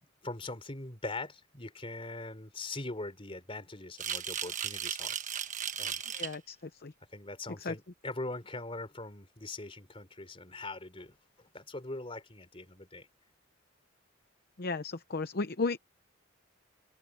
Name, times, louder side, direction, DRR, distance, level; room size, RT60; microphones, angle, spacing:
voice 1, 0.0-5.2 5.8-6.0 7.1-11.2 11.5-13.1, left 2 dB, 30° left, 3.6 m, -41 dB
sound 1, 4.0-6.4, right 8 dB, 40° right, 1.2 m, -36 dB
voice 2, 6.1-6.6 6.8-6.9 7.6-7.7 14.6-15.8, left 3 dB, 50° left, 0.8 m, -34 dB
open air
head